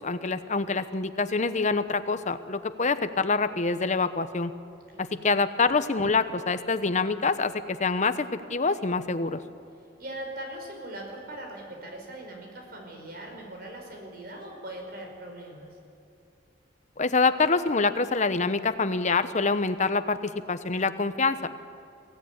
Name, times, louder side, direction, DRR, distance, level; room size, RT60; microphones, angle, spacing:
voice 1, 0.0-4.5 5.0-9.4 17.0-21.6, left 4 dB, 40° left, 11 dB, 1.0 m, -26 dB
voice 2, 4.9-5.3 10.0-15.8, right 1 dB, 55° right, 1 dB, 5.0 m, -40 dB
23.5 x 16.5 x 9.7 m, 2.6 s
head